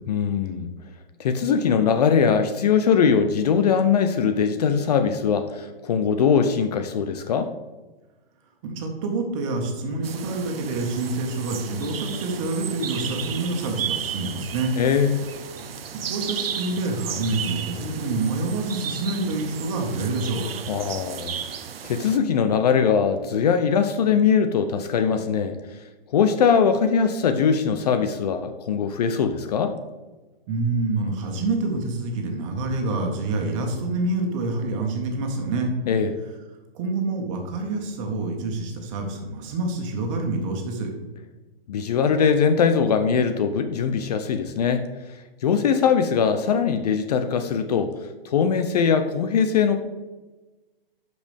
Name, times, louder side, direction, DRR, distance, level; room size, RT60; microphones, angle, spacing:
voice 1, 0.1-0.7 1.2-7.5 14.8-15.2 20.7-25.8 26.1-29.7 35.9-36.1 41.7-49.8, left 6 dB, 40° left, 9 dB, 0.6 m, -21 dB
voice 2, 8.6-14.7 15.9-20.5 30.5-35.7 36.7-40.9, right 2 dB, 35° right, 2 dB, 1.6 m, -27 dB
sound 1, 10.0-22.2, right 8 dB, 75° right, 0.8 m, -34 dB
11.5 x 5.2 x 3.5 m, 1.2 s
hypercardioid pair, 150°, 30 cm